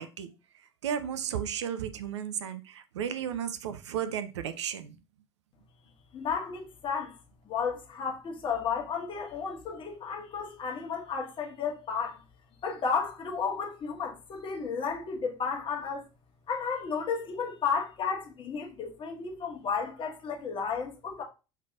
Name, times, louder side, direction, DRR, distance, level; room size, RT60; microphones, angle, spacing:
voice 1, 0.0-5.0, right 9 dB, 75° right, 0.4 m, -34 dB
voice 2, 6.1-7.1 7.4-12.2 12.6-16.0 16.5-21.2, left 6 dB, 35° left, 1.2 m, -33 dB
6.4 x 3.3 x 2.3 m
figure-of-eight pair, 65°, 15 cm